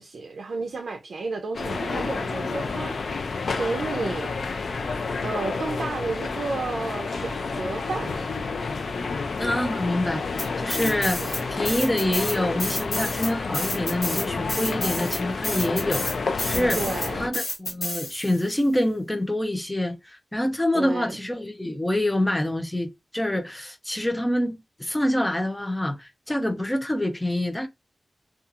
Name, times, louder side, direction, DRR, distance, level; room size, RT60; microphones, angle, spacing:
voice 1, 0.0-3.0 3.6-4.4 5.2-8.3 11.2-11.5 16.8-17.3 20.7-21.2, right 3 dB, 85° right, 0.4 m, -32 dB
sound 1, 1.5-17.3, left 4 dB, 80° left, 0.3 m, -30 dB
voice 2, 9.4-11.2 11.5-16.8 17.2-27.7, left 1 dB, 10° left, 0.4 m, -26 dB
sound 2, 10.4-11.4 11.7-18.5, left 1 dB, 65° left, 1.2 m, -30 dB
2.7 x 2.3 x 2.4 m
wide cardioid pair, 130°, 0 cm